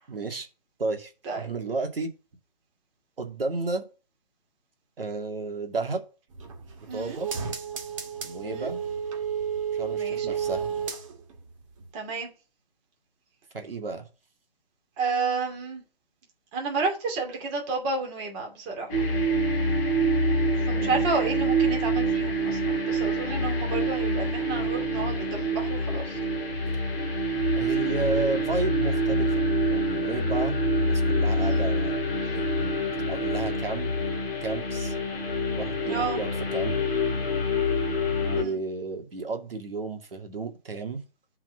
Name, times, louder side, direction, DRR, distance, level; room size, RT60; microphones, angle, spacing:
voice 1, 0.1-0.5 0.8-2.1 3.2-3.9 5.0-6.0 6.8-7.3 8.2-8.8 9.7-10.7 13.5-14.1 20.7-21.0 27.6-32.0 32.3-32.7 33.1-33.9 34.4-34.9 35.5-36.8 38.2-41.0, right 3 dB, 70° right, 2.4 m, -32 dB
sound 1, 6.3-11.5 11.8-11.9, right 7 dB, 35° right, 2.1 m, -32 dB
voice 2, 6.9-7.2 8.4-8.7 9.9-10.4 11.9-12.3 15.0-15.8 16.5-18.9 20.7-26.2 31.4-31.7 35.9-36.2 38.3-38.6, right 4 dB, 20° right, 2.6 m, -31 dB
sound 2, 18.9-38.4, right 1 dB, 5° left, 0.4 m, -26 dB
7.6 x 4.8 x 5.7 m
figure-of-eight pair, 150°, 29 cm